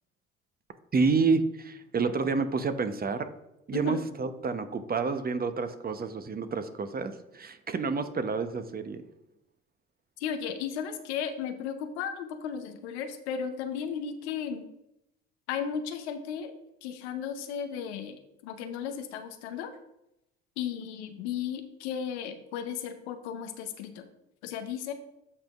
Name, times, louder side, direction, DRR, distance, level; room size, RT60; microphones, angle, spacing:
voice 1, 0.9-3.3 3.7-9.0, right 4 dB, 30° right, 10 dB, 0.8 m, -29 dB
voice 2, 10.2-14.6 15.5-16.5 16.8-19.7 20.6-24.1 24.4-24.9, left 8 dB, 80° left, 8 dB, 0.8 m, -35 dB
14.0 x 5.1 x 2.4 m, 0.87 s
hypercardioid pair, 60°, 33 cm